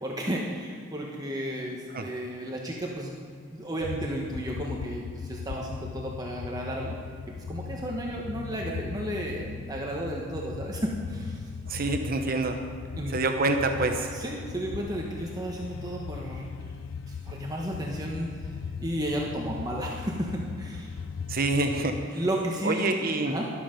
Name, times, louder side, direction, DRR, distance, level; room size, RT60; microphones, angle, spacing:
voice 1, 0.0-3.1 3.5-6.9 7.5-11.4 13.0-13.2 14.1-16.5 17.1-18.5 18.8-21.0 22.1-23.0 23.3-23.5, right 1 dB, 20° right, -2 dB, 1.1 m, -33 dB
sound 1, 3.8-22.1, left 6 dB, 80° left, 0.4 m, -39 dB
voice 2, 11.7-12.6 13.1-14.1 21.3-22.2 22.6-23.4, right 2 dB, 50° right, 5 dB, 0.8 m, -26 dB
13.0 x 12.0 x 5.2 m, 2.2 s
head